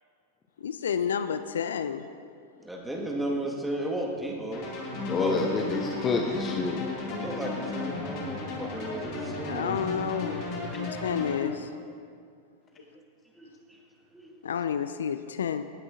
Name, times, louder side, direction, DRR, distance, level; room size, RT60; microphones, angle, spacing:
voice 1, 0.6-2.1 9.4-11.7 14.4-15.6, left 7 dB, 65° left, 12 dB, 0.3 m, -30 dB
voice 2, 2.6-4.8 5.2-5.4 7.1-9.8 13.4-13.8 14.1-14.3, right 1 dB, 5° right, -1 dB, 1.6 m, -34 dB
sound 1, 4.5-11.4, left 3 dB, 40° left, 2.3 m, -34 dB
voice 3, 5.1-7.4 11.4-11.6, left 4 dB, 25° left, 3 dB, 0.7 m, -29 dB
17.5 x 9.7 x 2.6 m, 2.3 s
figure-of-eight pair, 90°, 0 cm